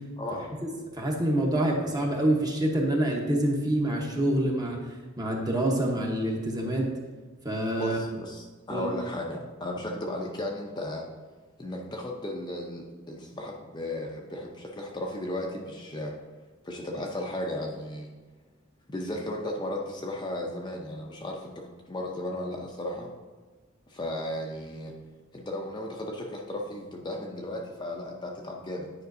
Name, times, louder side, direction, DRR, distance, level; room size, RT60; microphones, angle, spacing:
voice 1, 0.2-0.6 7.8-11.1 11.6-16.1 16.6-18.1 18.9-23.1 23.9-24.9 25.3-28.9, left 1 dB, 20° left, 0 dB, 0.6 m, -35 dB
voice 2, 1.0-4.8 5.2-6.9 7.4-8.0 8.7-8.9, right 1 dB, 20° right, -1 dB, 1.0 m, -26 dB
9.4 x 5.1 x 2.6 m, 1.3 s
head